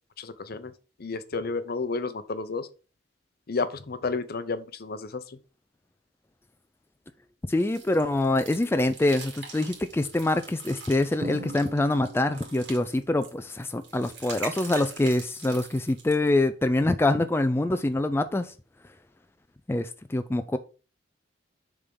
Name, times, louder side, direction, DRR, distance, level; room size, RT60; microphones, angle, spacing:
voice 1, 0.2-0.7 1.0-2.7 3.5-5.4, left 4 dB, 55° left, 0.7 m, -31 dB
voice 2, 7.5-18.5 19.7-20.6, left 2 dB, 15° left, 0.4 m, -25 dB
sound 1, 7.6-16.3, right 4 dB, 70° right, 2.3 m, -44 dB
Drum, 11.2-12.9, right 1 dB, 50° right, 1.3 m, -38 dB
6.8 x 3.6 x 5.2 m
head